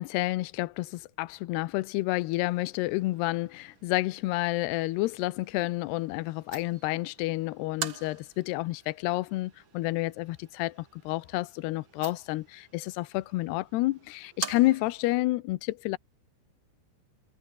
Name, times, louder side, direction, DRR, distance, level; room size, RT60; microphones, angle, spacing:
voice 1, 0.0-16.0, left 19 dB, 80° left, 2.4 m, -30 dB
sound 1, 2.1-15.2, right 6 dB, 50° right, 1.4 m, -45 dB
omnidirectional pair, 5.7 m